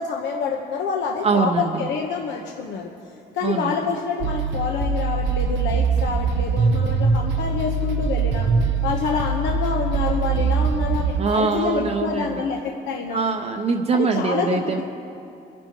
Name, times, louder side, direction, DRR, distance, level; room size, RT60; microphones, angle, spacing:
voice 1, 0.0-2.9 3.3-8.5 8.8-13.3 13.9-14.8, left 5 dB, 80° left, 1 dB, 1.1 m, -27 dB
voice 2, 1.2-1.9 3.4-3.9 11.2-12.5 13.1-14.8, right 5 dB, 35° right, 3 dB, 0.6 m, -23 dB
sound 1, 4.2-11.2, right 4 dB, 80° right, 0.8 m, -22 dB
24.0 x 10.5 x 3.0 m, 2.6 s
cardioid pair, 140°, 19 cm